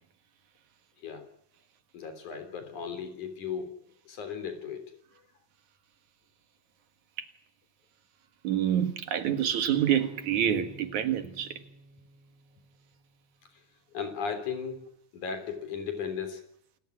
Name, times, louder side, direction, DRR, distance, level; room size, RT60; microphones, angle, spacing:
voice 1, 1.9-3.7 4.1-4.9 13.9-14.9 15.1-16.4, left 6 dB, 70° left, 4.9 m, -36 dB
voice 2, 8.4-11.6, right 10 dB, 70° right, 3.0 m, -27 dB
sound 1, 9.7-12.9, equal, 50° right, 5.8 m, -50 dB
28.5 x 14.0 x 9.7 m
omnidirectional pair, 3.6 m